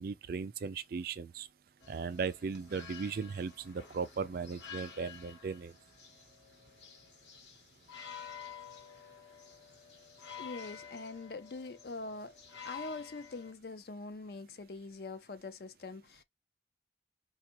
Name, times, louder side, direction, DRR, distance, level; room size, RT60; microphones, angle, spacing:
voice 1, 0.0-1.5 1.9-5.7, right 5 dB, 55° right, 0.3 m, -37 dB
sound 1, 1.8-13.5, left 7 dB, 85° left, 1.1 m, -50 dB
voice 2, 10.4-12.3 12.6-16.2, left 3 dB, 60° left, 0.5 m, -43 dB
4.2 x 2.4 x 2.9 m
head